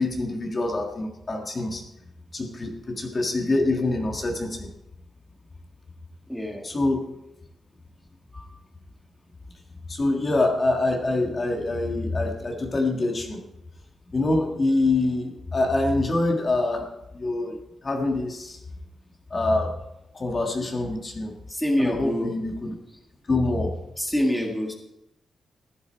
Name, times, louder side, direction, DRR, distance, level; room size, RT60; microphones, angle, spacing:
voice 1, 0.0-1.8 2.3-4.7 6.6-7.1 9.9-13.4 14.1-16.9 17.1-18.6 19.3-19.8 20.1-21.3 21.8-22.8 23.3-23.8, left 2 dB, 30° left, 2 dB, 1.7 m, -25 dB
voice 2, 6.3-6.6 8.3-8.5 21.5-22.3 24.0-24.7, equal, ahead, 1 dB, 1.7 m, -26 dB
15.0 x 11.0 x 4.5 m, 0.90 s
wide cardioid pair, 135°, 0 cm